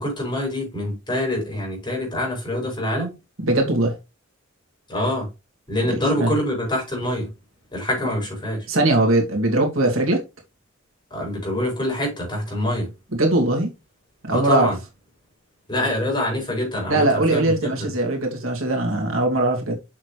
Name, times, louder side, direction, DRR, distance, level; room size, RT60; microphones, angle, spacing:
voice 1, 0.0-3.1 4.9-5.3 5.7-7.3 7.7-8.7 11.1-12.9 14.3-14.8 15.7-17.9, left 1 dB, 20° left, 5.3 m, -25 dB
voice 2, 3.4-4.0 6.2-6.4 8.7-10.2 13.2-13.7 14.2-14.7 16.9-19.7, right 2 dB, 80° right, 2.6 m, -20 dB
7.3 x 6.6 x 3.3 m
head